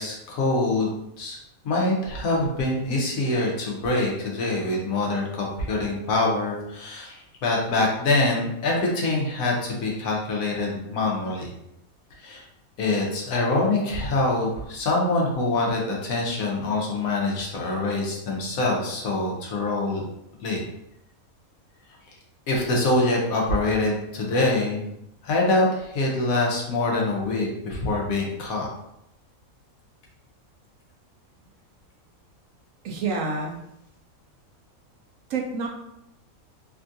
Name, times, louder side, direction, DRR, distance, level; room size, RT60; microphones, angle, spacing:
voice 1, 0.0-1.4 1.6-11.5 12.2-12.4 12.8-20.0 20.4-20.6 22.5-24.8 25.2-28.7, left 2 dB, 75° left, -2 dB, 1.2 m, -25 dB
voice 2, 32.8-33.6 35.3-35.7, right 4 dB, 70° right, 1 dB, 0.9 m, -28 dB
3.4 x 2.3 x 2.6 m, 0.81 s
omnidirectional pair, 1.5 m